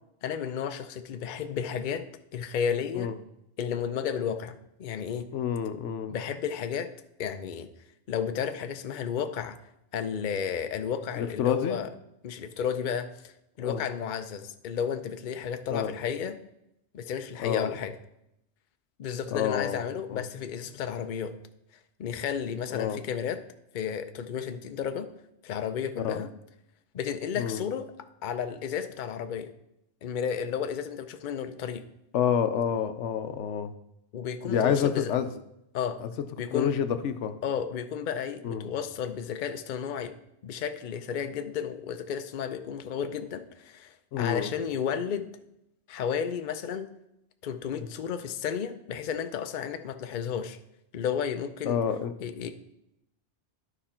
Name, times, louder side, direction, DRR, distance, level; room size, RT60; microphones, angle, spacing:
voice 1, 0.2-2.0 2.3-3.1 3.6-5.3 6.1-6.9 7.2-7.7 8.1-9.6 9.9-11.9 12.2-13.3 13.6-16.3 16.9-17.9 19.0-21.3 22.0-23.4 23.7-25.1 25.4-26.3 26.9-27.9 28.2-29.5 30.0-31.8 34.1-35.1 35.7-36.0 36.4-36.7 37.4-40.1 40.4-45.3 45.9-46.9 47.4-50.6 50.9-51.8 52.2-52.5, left 7 dB, 50° left, 9 dB, 0.7 m, -32 dB
voice 2, 5.3-6.2 11.2-11.8 13.6-13.8 15.7-15.9 17.4-17.7 19.3-19.8 20.1-20.2 22.7-23.0 26.0-26.2 27.4-27.6 32.1-33.7 34.4-35.3 36.0-36.1 36.5-37.4 38.4-38.7 44.1-44.5 47.8-47.9 51.7-52.1, left 8 dB, 85° left, 10 dB, 1.0 m, -28 dB
11.5 x 5.1 x 4.3 m, 0.82 s
omnidirectional pair, 1.2 m